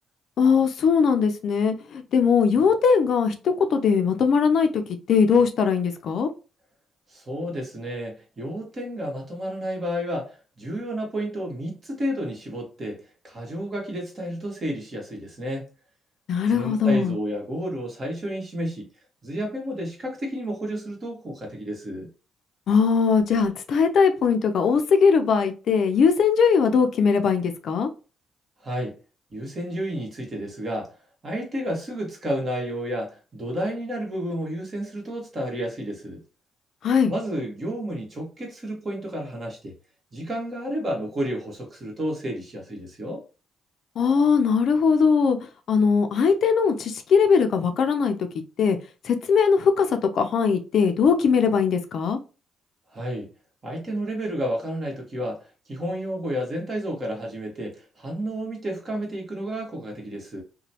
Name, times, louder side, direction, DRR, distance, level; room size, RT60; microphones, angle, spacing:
voice 1, 0.4-4.8 5.1-6.3 16.3-17.1 22.7-27.9 36.8-37.1 44.0-45.4 45.7-48.2 48.6-48.8 49.0-52.2, left 5 dB, 65° left, 0.5 m, -20 dB
voice 2, 7.1-15.7 16.5-18.9 19.2-22.1 28.6-29.0 29.3-30.9 31.2-36.2 37.1-39.7 40.1-43.2 52.9-53.3 53.6-60.4, equal, 40° right, 1.4 m, -31 dB
3.0 x 2.2 x 2.8 m
cardioid pair, 90°, 0 cm